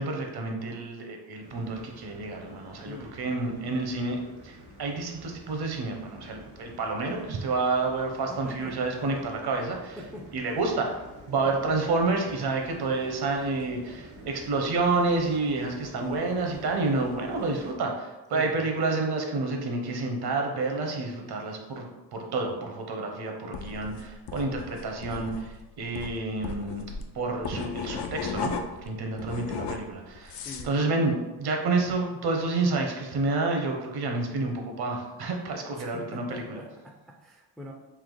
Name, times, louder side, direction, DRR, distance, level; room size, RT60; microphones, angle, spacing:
voice 1, 0.0-4.2 4.4-10.0 10.3-11.0 11.3-26.8 27.1-28.5 28.9-36.6, right 3 dB, 65° right, 2 dB, 0.8 m, -29 dB
sound 1, 1.4-17.7, right 1 dB, 90° right, 1.4 m, -49 dB
voice 2, 8.3-8.8 10.0-10.3 18.3-18.6 30.4-30.9 35.7-37.7, left 1 dB, ahead, 0 dB, 0.3 m, -43 dB
sound 2, 23.5-28.9 29.2-30.7, left 5 dB, 80° left, 0.5 m, -36 dB
3.5 x 2.8 x 3.8 m, 1.1 s
wide cardioid pair, 135°, 41 cm